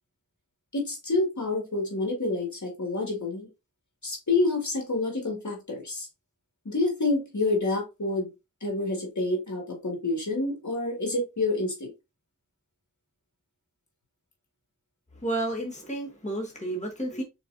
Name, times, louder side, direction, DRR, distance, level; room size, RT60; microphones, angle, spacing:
voice 1, 0.7-3.5 4.0-6.1 6.7-8.3 8.6-11.9, left 2 dB, 60° left, 2.0 m, -28 dB
voice 2, 15.1-17.2, right 1 dB, 20° left, 1.6 m, -31 dB
4.4 x 4.2 x 2.5 m
wide cardioid pair, 45°, 32 cm